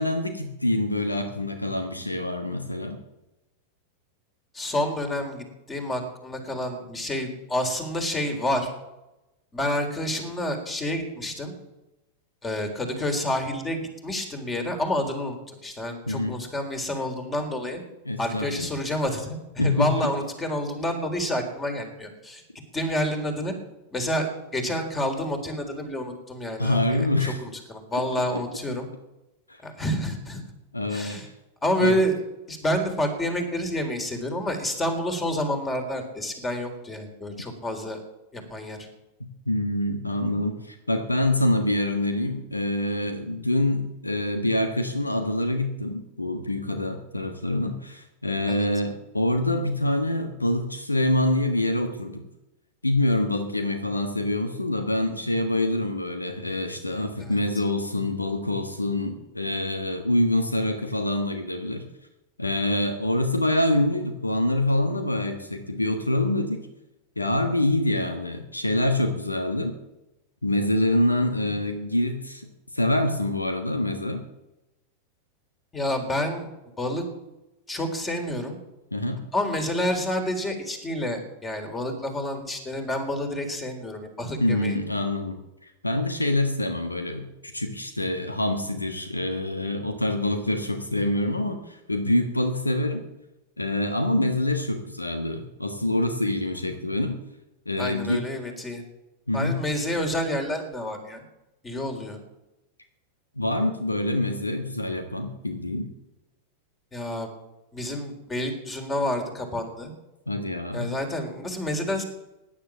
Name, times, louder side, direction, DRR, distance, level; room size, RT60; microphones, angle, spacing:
voice 1, 0.0-3.0 16.1-16.3 18.0-18.7 19.6-20.1 26.6-27.4 27.9-28.0 30.7-31.2 31.8-32.0 39.2-52.3 52.8-61.8 62.4-66.7 67.2-69.8 70.4-72.5 72.7-74.2 78.9-79.2 84.4-93.0 93.6-97.1 97.6-98.2 99.3-99.6 103.4-105.9 110.3-110.9, left 1 dB, 80° left, 7 dB, 1.5 m, -26 dB
voice 2, 4.5-8.7 9.5-11.5 12.4-17.8 18.2-22.4 22.7-23.5 23.9-28.9 29.6-30.4 30.9-31.3 31.6-32.1 32.5-38.0 38.3-38.8 48.5-48.7 57.2-57.3 71.5-71.6 75.7-76.5 76.8-77.0 77.7-78.6 79.3-84.8 97.8-98.8 99.3-101.2 101.6-102.2 106.9-107.3 107.7-109.9 110.7-112.0, left 1 dB, 15° left, 5 dB, 3.8 m, -29 dB
16.5 x 10.5 x 7.3 m, 0.96 s
figure-of-eight pair, 90°, 0 cm